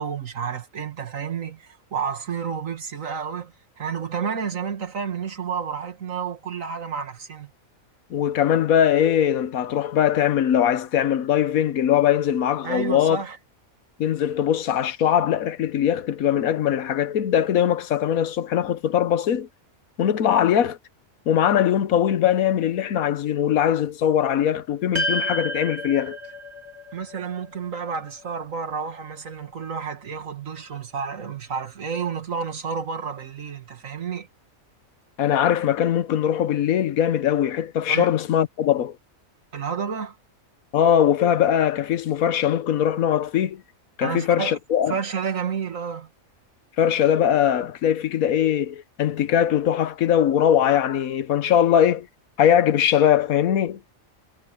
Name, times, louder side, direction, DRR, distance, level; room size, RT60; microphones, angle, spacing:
voice 1, 0.0-7.5 12.6-13.4 26.9-34.3 37.9-38.1 39.5-40.2 44.0-44.6 44.9-46.1, right 6 dB, 70° right, 2.1 m, -30 dB
voice 2, 8.1-13.2 14.0-19.5 20.0-20.8 21.3-26.2 35.2-39.0 40.7-43.6 44.0-44.9 46.8-52.1 52.4-53.8, left 9 dB, 85° left, 1.3 m, -21 dB
sound 1, 24.9-29.4, equal, 30° right, 7.2 m, -32 dB
omnidirectional pair, 1.4 m